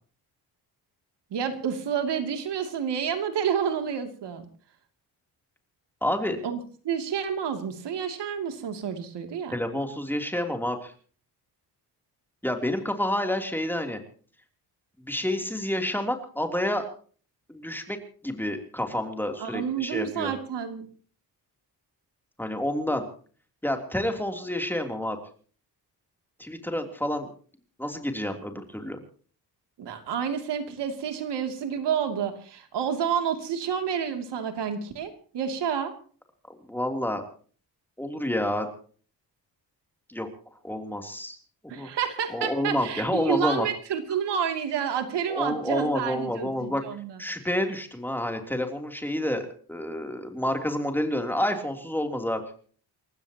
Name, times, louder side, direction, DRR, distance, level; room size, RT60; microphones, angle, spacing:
voice 1, 1.3-4.4 6.4-6.6 6.8-9.5 19.4-20.9 29.8-35.9 41.7-47.2, right 8 dB, 80° right, 6 dB, 2.9 m, -29 dB
voice 2, 6.0-6.4 9.5-10.9 12.4-14.0 15.0-16.8 17.5-18.0 18.2-20.3 22.4-23.0 23.6-25.2 26.4-27.3 27.8-29.0 36.5-37.2 38.0-38.7 40.1-40.3 40.6-41.4 41.6-41.9 42.3-43.7 45.3-46.8 47.2-52.4, left 1 dB, 5° left, 4 dB, 3.2 m, -29 dB
29.0 x 15.5 x 3.0 m, 0.43 s
cardioid pair, 125°, 41 cm